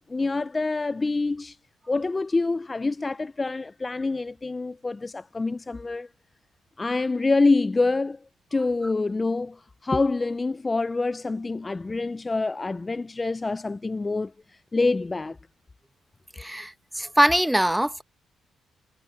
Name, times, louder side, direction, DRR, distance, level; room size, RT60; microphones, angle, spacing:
voice 1, 0.1-1.6 1.9-6.1 6.8-8.2 8.5-14.3 14.7-15.4, left 3 dB, 25° left, 0.4 m, -26 dB
voice 2, 16.4-18.0, right 1 dB, 5° right, 0.9 m, -22 dB
cardioid pair, 90°, 0 cm